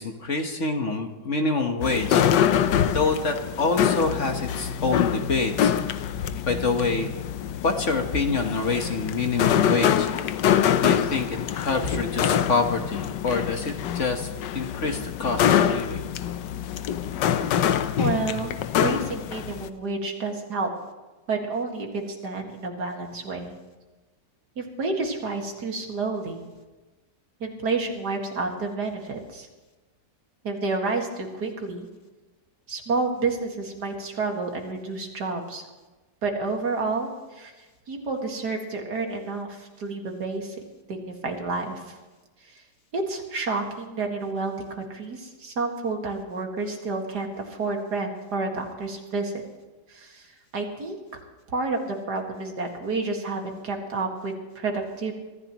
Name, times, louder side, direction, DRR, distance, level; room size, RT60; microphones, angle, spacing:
voice 1, 0.0-2.2 2.9-5.7 6.5-7.1 7.6-10.1 10.8-14.3 14.5-16.1, left 4 dB, 45° left, 4 dB, 1.5 m, -26 dB
sound 1, 1.8-19.7, left 9 dB, 85° left, 1.4 m, -25 dB
voice 2, 18.0-20.7 21.3-23.6 24.6-26.4 27.4-29.5 30.4-31.9 32.7-35.6 36.2-37.5 37.9-40.6 40.9-42.0 42.9-49.3 49.9-50.3 50.5-51.0 51.5-55.1, right 3 dB, 65° right, 2 dB, 2.6 m, -30 dB
24.5 x 14.5 x 3.1 m, 1.2 s
omnidirectional pair, 1.9 m